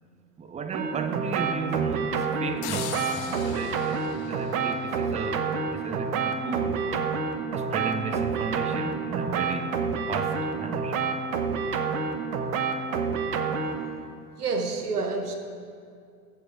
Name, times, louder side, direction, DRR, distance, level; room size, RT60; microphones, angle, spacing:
voice 1, 0.4-7.2 7.5-9.7 10.1-11.0, right 5 dB, 15° right, 0.6 m, -35 dB
sound 1, 0.7-13.9, right 5 dB, 65° right, 1.1 m, -28 dB
sound 2, 2.6-5.5, left 11 dB, 45° left, 0.8 m, -39 dB
voice 2, 14.4-15.4, right 3 dB, 80° right, 1.3 m, -28 dB
14.0 x 7.1 x 4.6 m
figure-of-eight pair, 75°, 45 cm